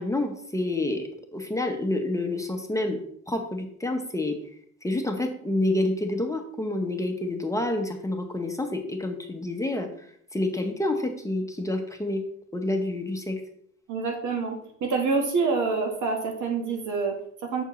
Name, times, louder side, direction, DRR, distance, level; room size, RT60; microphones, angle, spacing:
voice 1, 0.0-3.0 3.3-4.4 4.8-9.9 10.3-12.2 12.5-13.4, left 2 dB, 10° left, 4 dB, 0.9 m, -28 dB
voice 2, 13.9-17.6, right 4 dB, 75° right, 3 dB, 1.5 m, -27 dB
6.9 x 4.4 x 3.1 m, 0.65 s
cardioid pair, 90°, 30 cm